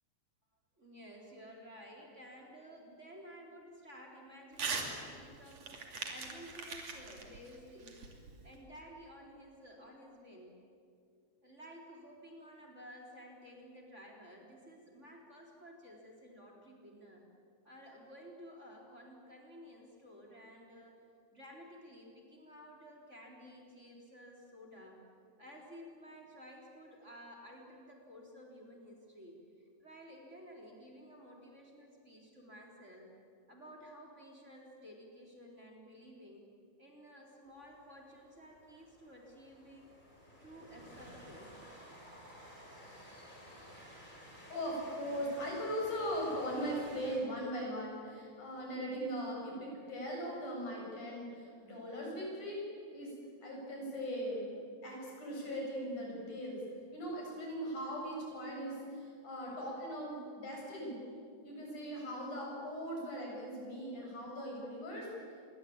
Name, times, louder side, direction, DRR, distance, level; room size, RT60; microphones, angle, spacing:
voice 1, 0.8-8.0 8.4-10.6 11.4-17.2 17.6-21.0 21.3-25.0 25.4-33.1 33.5-36.4 36.8-39.9 40.4-41.6, equal, 20° right, 0 dB, 4.2 m, -53 dB
Crumpling crinkling / Tearing, 4.5-4.9 5.2-8.6, right 4 dB, 60° right, 3.9 m, -41 dB
Train, 37.5-47.2, equal, 15° left, 5.9 m, -55 dB
voice 2, 44.2-52.6 52.9-53.1 53.4-56.6 56.9-61.0 61.4-65.1, equal, 80° left, -2 dB, 9.2 m, -39 dB
27.5 x 23.0 x 8.8 m, 2.4 s
omnidirectional pair, 3.4 m